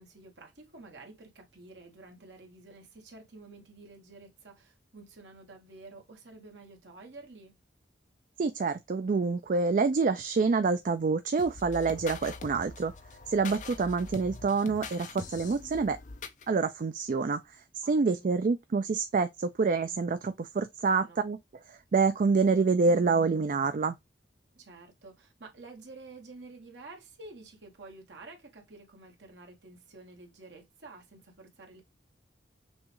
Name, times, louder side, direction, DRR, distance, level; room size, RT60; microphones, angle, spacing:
voice 1, 0.0-7.6 17.8-18.3 20.9-21.2 24.5-31.8, right 3 dB, 75° right, 1.6 m, -50 dB
voice 2, 8.4-12.9 13.3-16.0 16.5-24.0, right 4 dB, 45° right, 0.4 m, -27 dB
sound 1, 11.4-16.5, left 4 dB, 45° left, 0.6 m, -43 dB
6.2 x 2.4 x 2.9 m
head